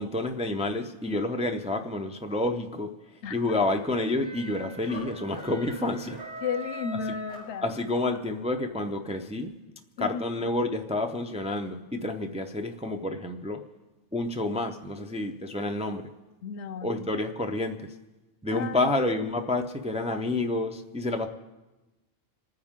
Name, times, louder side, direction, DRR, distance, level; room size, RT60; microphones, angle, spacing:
voice 1, 0.0-2.9 3.3-6.2 7.6-9.5 10.0-13.6 14.1-16.0 16.8-17.8 18.4-21.3, left 2 dB, 10° right, 4 dB, 0.5 m, -29 dB
sound 1, 3.3-8.1, equal, 90° right, 7.5 m, -42 dB
voice 2, 6.4-7.7 10.0-10.3 16.4-17.1 18.5-18.9, left 6 dB, 80° left, 13 dB, 0.9 m, -33 dB
28.5 x 9.8 x 3.7 m, 1.1 s
omnidirectional pair, 1.2 m